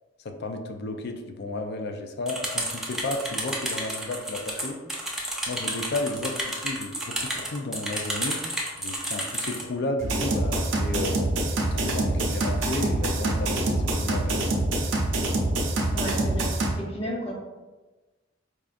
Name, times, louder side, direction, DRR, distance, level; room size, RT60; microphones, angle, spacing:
voice 1, 0.2-4.8 5.5-8.4 8.8-11.2 11.6-14.6, left 2 dB, 60° left, 5 dB, 0.4 m, -33 dB
sound 1, 2.3-9.6, right 1 dB, ahead, 0.6 m, -31 dB
sound 2, 10.0-16.7, right 1 dB, 75° right, 0.6 m, -25 dB
voice 2, 15.9-16.5 16.8-17.3, equal, 30° left, -2 dB, 0.8 m, -32 dB
4.8 x 2.4 x 2.5 m, 1.2 s
head